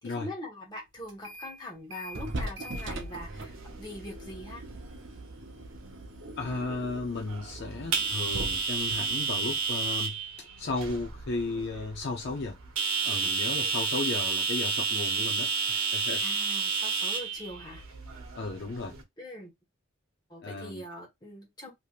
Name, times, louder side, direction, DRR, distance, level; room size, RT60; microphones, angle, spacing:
voice 1, 0.0-4.6 16.2-17.8 19.2-19.5 20.3-21.7, left 1 dB, 20° left, 1.2 m, -42 dB
sound 1, 1.1-1.6 1.9-10.4, right 1 dB, 55° right, 0.7 m, -41 dB
sound 2, 3.0-19.0, right 4 dB, 80° right, 1.0 m, -32 dB
voice 2, 6.4-12.6 13.0-16.2 18.3-19.0 20.4-20.8, left 3 dB, 50° left, 0.5 m, -35 dB
3.3 x 2.9 x 2.4 m
head